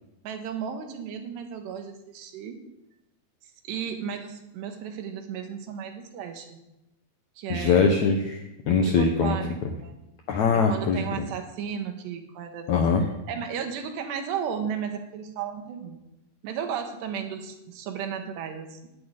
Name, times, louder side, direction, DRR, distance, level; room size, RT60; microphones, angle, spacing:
voice 1, 0.2-2.6 3.7-6.6 7.4-7.9 8.8-9.9 10.5-12.7 13.0-16.0 16.4-18.9, right 7 dB, 80° right, 5 dB, 3.6 m, -34 dB
voice 2, 7.5-9.4 10.3-11.0 12.7-13.0, left 5 dB, 75° left, 4 dB, 1.7 m, -22 dB
11.5 x 8.6 x 9.6 m, 0.93 s
omnidirectional pair, 4.8 m